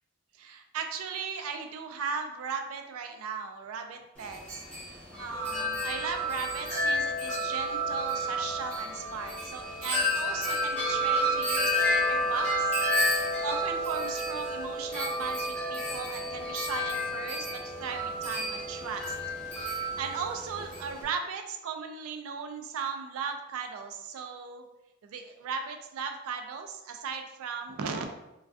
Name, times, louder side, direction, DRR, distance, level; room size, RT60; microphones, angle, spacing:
voice 1, 0.4-4.6 5.2-19.2 19.5-24.6 25.0-28.1, right 5 dB, 75° right, 5 dB, 0.3 m, -37 dB
Wind chime, 4.2-21.0, equal, 5° left, 0.7 m, -30 dB
2.4 x 2.3 x 2.3 m, 0.92 s
head